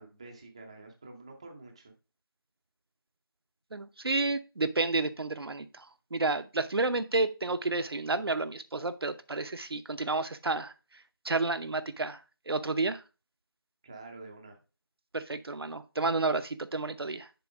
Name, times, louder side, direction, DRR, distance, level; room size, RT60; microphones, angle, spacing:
voice 1, 0.0-1.9 13.8-14.6, right 3 dB, 15° right, 0.5 m, -48 dB
voice 2, 3.7-5.8 6.1-10.7 11.2-12.2 12.5-13.0 15.1-17.3, right 3 dB, 80° right, 0.7 m, -30 dB
6.9 x 4.1 x 4.9 m
figure-of-eight pair, 170°, 12 cm